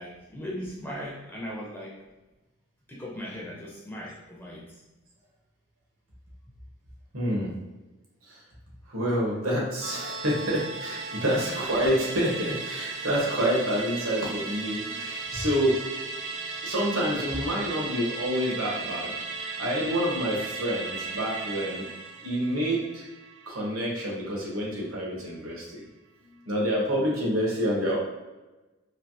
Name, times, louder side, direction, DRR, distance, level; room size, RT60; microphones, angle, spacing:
voice 1, 0.0-2.0 2.9-4.6 11.4-11.5, equal, 10° left, -3 dB, 0.4 m, -38 dB
voice 2, 7.1-7.5 8.3-8.4 8.9-15.8 16.6-21.9 22.2-23.0 23.5-25.8 26.4-28.0, equal, 80° right, -3 dB, 1.1 m, -28 dB
Musical instrument, 9.8-24.5 24.8-24.9, right 4 dB, 60° right, 0.4 m, -36 dB
3.2 x 2.6 x 2.7 m, 1.1 s
head